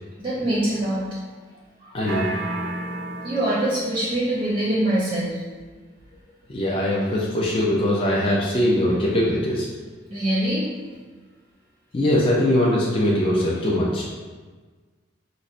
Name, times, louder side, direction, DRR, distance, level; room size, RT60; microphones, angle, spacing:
voice 1, 0.2-1.0 1.8-1.9 3.2-5.4 10.1-10.6, right 1 dB, 25° right, -7 dB, 0.5 m, -23 dB
voice 2, 1.9-2.3 6.5-9.7 11.9-14.1, left 1 dB, 30° left, -5 dB, 0.4 m, -21 dB
sound 1, 2.1-4.0, right 2 dB, 80° right, 0.5 m, -31 dB
5.2 x 2.1 x 2.5 m, 1.4 s
head